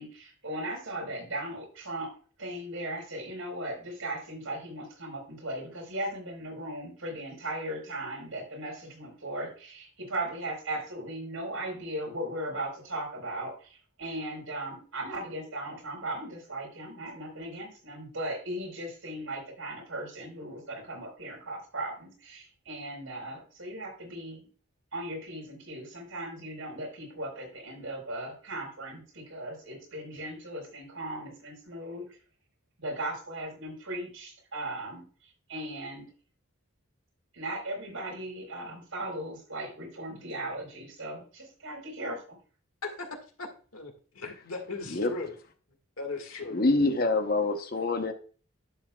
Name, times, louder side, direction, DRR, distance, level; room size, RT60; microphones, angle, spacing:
voice 1, 0.0-2.1 2.4-24.5 24.9-32.0 32.8-35.0 35.5-36.1 37.3-42.4, right 1 dB, 70° right, -1 dB, 4.3 m, -37 dB
voice 2, 42.8-45.3 46.0-46.6, left 3 dB, 90° left, 3 dB, 1.9 m, -38 dB
voice 3, 46.5-48.1, left 2 dB, 45° left, 7 dB, 0.9 m, -26 dB
11.0 x 7.1 x 2.3 m, 0.39 s
head